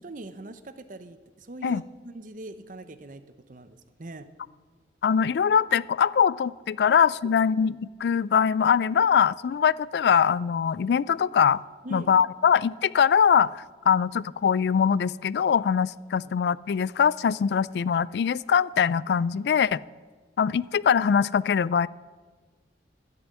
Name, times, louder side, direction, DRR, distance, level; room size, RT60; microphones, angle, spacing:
voice 1, 0.0-3.2 3.5-4.3 11.8-12.1 13.9-14.0 16.2-16.3, right 1 dB, 50° right, 12 dB, 0.8 m, -42 dB
voice 2, 5.0-11.6 11.9-19.8 20.4-21.9, left 7 dB, 65° left, 21 dB, 0.3 m, -22 dB
12.0 x 7.0 x 9.8 m, 1.4 s
head